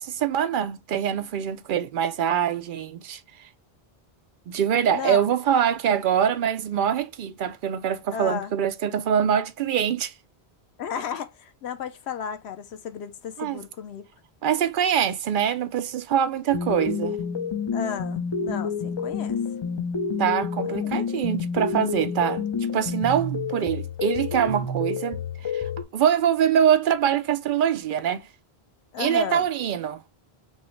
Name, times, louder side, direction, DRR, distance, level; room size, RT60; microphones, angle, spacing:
voice 1, 0.0-3.2 4.5-10.1 13.4-13.6 14.4-17.2 20.2-22.4 22.7-28.3 29.0-30.0, right 9 dB, 60° right, 0.7 m, -24 dB
voice 2, 4.9-5.2 8.1-8.5 10.8-14.0 17.7-19.4 20.6-21.0 28.9-29.5, left 7 dB, 90° left, 0.9 m, -34 dB
sound 1, 16.5-25.8, left 5 dB, 35° left, 0.5 m, -29 dB
5.2 x 2.1 x 3.1 m
omnidirectional pair, 1.0 m